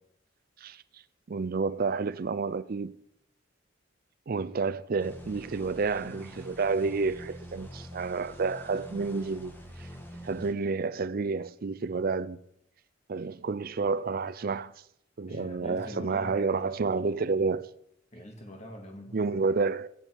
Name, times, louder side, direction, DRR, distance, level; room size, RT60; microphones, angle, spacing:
voice 1, 1.3-3.0 4.3-9.5 9.8-9.9 10.2-12.4 13.1-14.7 15.2-17.7 19.1-19.9, right 4 dB, 45° right, 0.5 m, -30 dB
sound 1, 5.0-10.5, equal, 10° left, 1.5 m, -46 dB
voice 2, 15.3-16.8 18.1-19.4, equal, 35° left, 2.2 m, -44 dB
14.0 x 10.0 x 4.7 m
head